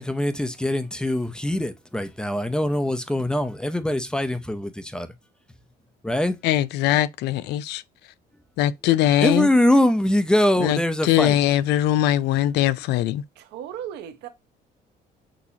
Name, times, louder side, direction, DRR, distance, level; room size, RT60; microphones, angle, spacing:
voice 1, 0.0-5.1 6.0-6.4 9.2-11.4, left 1 dB, 5° left, 0.6 m, -23 dB
voice 2, 6.4-7.8 8.6-9.5 10.6-13.2, left 13 dB, 80° left, 0.4 m, -21 dB
voice 3, 13.4-14.3, right 9 dB, 85° right, 0.9 m, -36 dB
6.2 x 2.8 x 2.8 m
cardioid pair, 110°, 17 cm